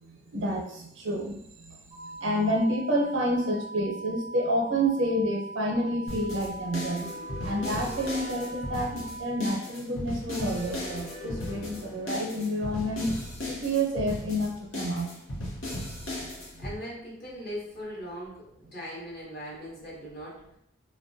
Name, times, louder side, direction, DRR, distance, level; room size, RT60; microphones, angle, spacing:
voice 1, 0.0-7.2 7.4-13.1 13.5-15.1 15.3-15.4 15.8-16.3 16.6-16.7, right 1 dB, 75° right, 0 dB, 0.6 m, -29 dB
sound 1, 1.9-9.5, right 2 dB, 25° right, 0.4 m, -41 dB
sound 2, 6.1-16.8, left 1 dB, 85° left, 0.8 m, -37 dB
sound 3, 6.8-9.7 10.3-13.2, left 3 dB, 35° left, 0.5 m, -45 dB
voice 2, 16.6-20.5, equal, 55° left, -7 dB, 0.9 m, -39 dB
2.2 x 2.2 x 2.6 m, 0.76 s
head